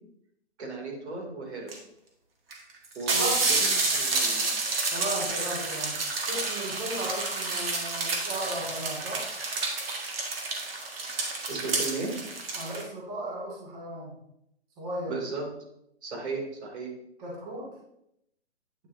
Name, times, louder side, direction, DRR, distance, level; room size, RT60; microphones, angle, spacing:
voice 1, 0.6-1.7 2.9-4.5 11.5-12.2 15.1-15.4 16.0-16.9, right 3 dB, 75° right, 0 dB, 3.0 m, -35 dB
sound 1, 1.7-1.8 2.5-2.6 2.8-12.8, right 3 dB, 55° right, 2.0 m, -29 dB
voice 2, 3.1-3.5 4.9-6.0 6.3-9.3 12.5-14.2 14.8-15.1 17.2-17.8, right 1 dB, 35° right, -5 dB, 2.5 m, -35 dB
9.5 x 6.4 x 2.8 m, 0.79 s
hypercardioid pair, 160°, 34 cm